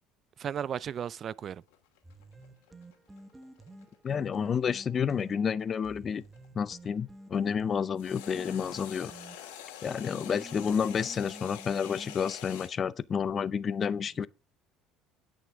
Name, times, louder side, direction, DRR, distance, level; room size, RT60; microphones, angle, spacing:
voice 1, 0.4-1.6, right 8 dB, 45° right, 0.4 m, -35 dB
sound 1, 1.7-6.9 8.0-12.7, left 10 dB, 90° left, 2.7 m, -46 dB
sound 2, 2.0-12.2, right 2 dB, 15° right, 1.2 m, -51 dB
voice 2, 4.0-6.2 6.5-9.1 9.8-14.3, left 7 dB, 40° left, 0.5 m, -30 dB
16.0 x 6.4 x 3.5 m
supercardioid pair, 95°, 0 cm